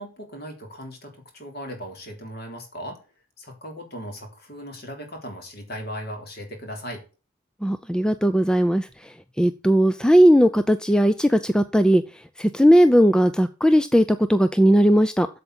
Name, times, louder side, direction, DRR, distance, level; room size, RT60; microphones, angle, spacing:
voice 1, 0.0-3.0 3.4-7.0, equal, 45° left, 3.6 m, -37 dB
voice 2, 7.6-12.0 12.4-15.3, equal, 5° left, 0.4 m, -18 dB
8.3 x 7.1 x 7.9 m
head